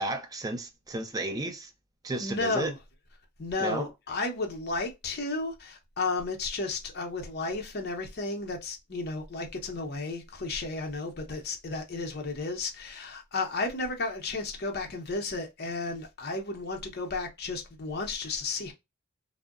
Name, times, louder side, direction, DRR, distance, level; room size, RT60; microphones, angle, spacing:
voice 1, 0.0-1.7 2.0-2.7 3.6-3.9, right 2 dB, 15° right, 0.4 m, -33 dB
voice 2, 2.2-2.8 3.4-18.7, left 3 dB, 50° left, 0.6 m, -33 dB
2.6 x 2.0 x 2.4 m
head